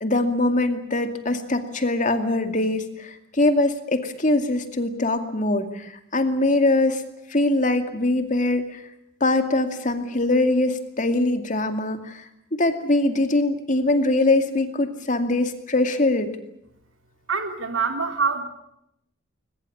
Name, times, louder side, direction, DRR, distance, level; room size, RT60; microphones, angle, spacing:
voice 1, 0.0-7.0 7.3-8.8 9.2-12.2 12.5-16.3, left 2 dB, 40° left, 7 dB, 2.3 m, -22 dB
voice 2, 17.3-18.4, right 5 dB, 90° right, 6 dB, 3.3 m, -25 dB
21.5 x 21.0 x 8.6 m, 0.78 s
head